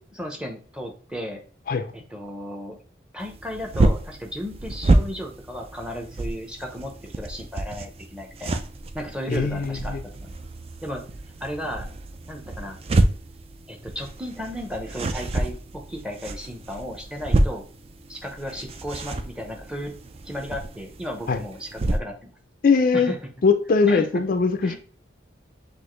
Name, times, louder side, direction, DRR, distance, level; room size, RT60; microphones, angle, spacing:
voice 1, 0.1-1.4 1.9-2.8 3.1-8.6 8.9-10.4 10.8-11.0 11.4-11.9 12.3-12.8 13.7-17.6 18.1-19.9 20.2-22.3 22.9-23.2 23.9-24.1 24.6-24.8, equal, 5° right, 2 dB, 0.7 m, -34 dB
sound 1, 3.2-22.0, right 2 dB, 30° right, 0.4 m, -28 dB
voice 2, 9.3-10.0 21.3-21.4 22.6-23.1 23.4-24.8, left 4 dB, 50° left, 7 dB, 0.4 m, -21 dB
6.2 x 2.5 x 3.1 m, 0.43 s
head